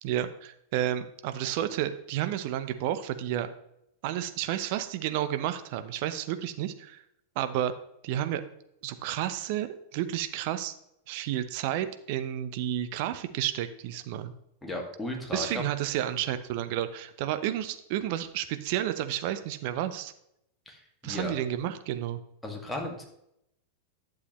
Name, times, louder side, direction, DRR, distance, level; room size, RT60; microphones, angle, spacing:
voice 1, 0.0-3.5 4.0-7.0 7.4-7.7 8.0-8.4 8.8-10.7 11.1-14.3 15.3-20.1 21.0-22.2, right 12 dB, 45° right, 11 dB, 0.7 m, -31 dB
voice 2, 14.6-15.6 20.7-21.3 22.4-23.0, left 1 dB, 5° left, 0 dB, 2.0 m, -35 dB
11.0 x 7.2 x 3.1 m, 0.77 s
figure-of-eight pair, 90°, 0 cm